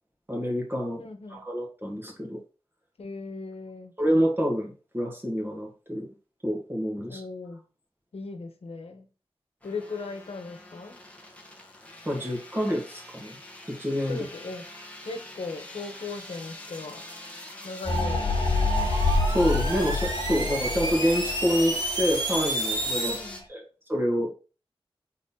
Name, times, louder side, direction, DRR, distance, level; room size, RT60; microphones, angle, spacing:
voice 1, 0.3-1.0 1.3-2.4 4.0-6.1 6.4-7.2 12.1-13.4 13.7-14.2 19.2-23.2 23.5-23.6 23.9-24.3, equal, 20° right, -1 dB, 2.1 m, -27 dB
voice 2, 1.0-1.4 3.0-3.9 7.1-7.6 8.1-9.1 9.6-11.0 14.1-14.6 15.0-17.0 17.6-18.5 23.0-23.4, left 3 dB, 75° left, 4 dB, 1.1 m, -38 dB
sound 1, 9.6-23.4, left 1 dB, 10° left, 1.3 m, -44 dB
sound 2, 17.9-23.3, left 2 dB, 45° left, 1.7 m, -28 dB
sound 3, 18.4-23.2, right 1 dB, 45° right, 1.7 m, -31 dB
4.2 x 4.1 x 5.6 m, 0.35 s
wide cardioid pair, 70°, 10 cm